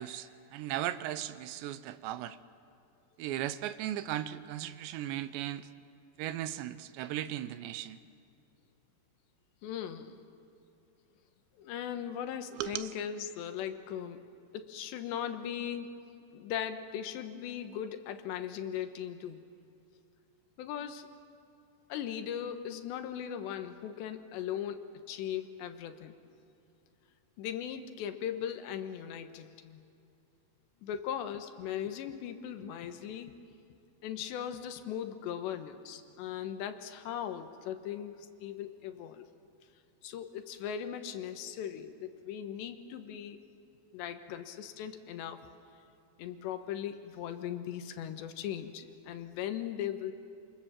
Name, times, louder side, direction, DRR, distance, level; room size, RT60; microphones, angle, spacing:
voice 1, 0.0-2.4 3.2-5.7 6.2-8.0 12.5-12.9, right 12 dB, 85° right, 13 dB, 3.0 m, -37 dB
voice 2, 9.6-10.2 11.6-14.2 14.5-16.0 16.3-19.4 20.6-21.1 21.9-26.1 27.4-29.8 30.8-33.3 34.0-39.3 40.0-43.5 43.9-45.5 46.2-50.1, left 9 dB, 85° left, 8 dB, 3.4 m, -38 dB
27.5 x 26.5 x 7.4 m, 2.6 s
omnidirectional pair, 5.0 m